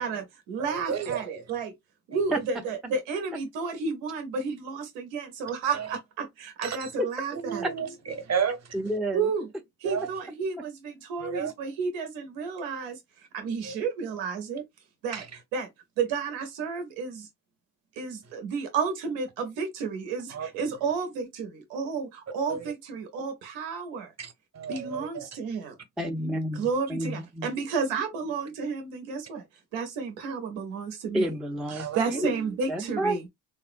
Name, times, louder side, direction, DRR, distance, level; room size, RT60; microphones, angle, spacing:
voice 1, 0.0-1.7 2.1-7.9 9.1-9.5 9.8-14.6 15.0-15.2 15.5-15.7 16.0-17.3 17.9-24.1 24.7-25.8 26.5-29.4 29.7-31.3 31.7-33.3, right 5 dB, 90° right, 0.7 m, -32 dB
voice 2, 0.6-1.2 5.7-5.9 6.6-6.9 7.4-8.8 9.8-10.1 11.2-11.5 13.6-13.7 15.1-15.2 20.3-20.5 22.5-22.6 24.2-25.3 31.7-32.0, right 7 dB, 35° right, 0.9 m, -32 dB
voice 3, 8.7-9.3 26.0-27.5 31.1-32.3 32.7-33.2, right 1 dB, ahead, 0.4 m, -30 dB
3.5 x 2.0 x 2.4 m
supercardioid pair, 50°, 44 cm